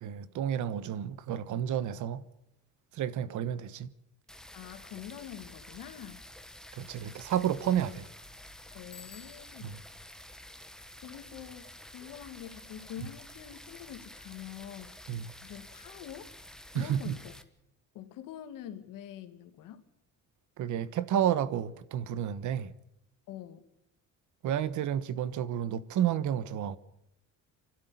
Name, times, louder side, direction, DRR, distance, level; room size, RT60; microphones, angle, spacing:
voice 1, 0.0-2.2 2.9-3.9 6.7-8.1 9.6-9.8 15.1-15.3 16.7-17.2 20.6-22.7 24.4-26.8, right 10 dB, 65° right, 1.2 m, -31 dB
sound 1, 4.3-17.4, left 1 dB, ahead, 1.4 m, -50 dB
voice 2, 4.5-6.2 8.7-9.8 11.0-11.7 11.9-15.0 15.4-16.3 16.7-17.3 17.9-19.8 23.3-23.6, left 10 dB, 85° left, 2.1 m, -45 dB
Bicycle bell, 8.9-9.9, left 7 dB, 45° left, 3.0 m, -53 dB
27.0 x 12.5 x 9.5 m
cardioid pair, 145°, 32 cm